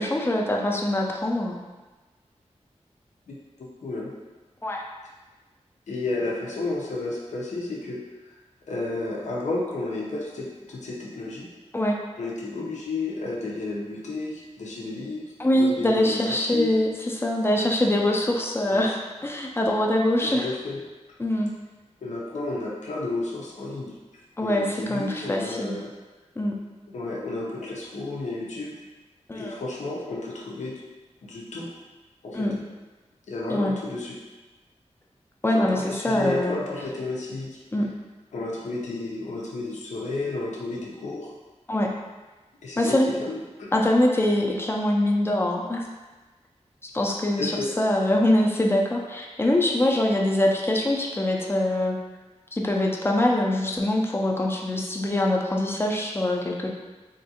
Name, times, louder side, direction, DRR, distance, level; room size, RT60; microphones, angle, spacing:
voice 1, 0.0-1.6 4.6-4.8 11.7-12.0 15.4-20.5 21.2-21.5 24.4-25.8 26.4-26.6 29.3-29.6 32.3-32.6 33.5-33.7 35.4-36.6 37.7-37.9 41.7-41.9 42.8-43.1 43.7-45.8 46.8-52.0 52.5-56.7, left 1 dB, 20° left, 0 dB, 0.4 m, -23 dB
voice 2, 3.8-4.1 5.9-8.0 8.7-11.5 12.2-15.2 15.5-16.7 18.7-18.9 20.2-20.8 22.0-23.9 24.4-25.9 26.9-28.7 29.3-30.8 31.2-31.7 32.2-32.5 33.3-34.1 35.5-37.6 38.3-41.3 42.6-43.7 47.4-47.6, left 2 dB, 85° left, -4 dB, 0.6 m, -32 dB
3.5 x 2.4 x 2.7 m, 1.2 s
wide cardioid pair, 100°, 12 cm